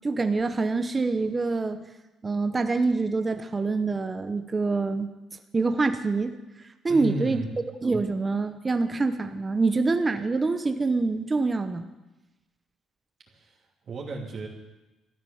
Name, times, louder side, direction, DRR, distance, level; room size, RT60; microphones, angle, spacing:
voice 1, 0.0-1.8 2.2-5.1 5.5-6.4 6.8-7.4 7.8-11.9, right 3 dB, 20° right, 8 dB, 0.8 m, -25 dB
voice 2, 6.9-7.5 13.3-14.5, right 2 dB, 45° right, -1 dB, 2.8 m, -34 dB
13.5 x 11.5 x 7.0 m, 1.1 s
cardioid pair, 135°, 0 cm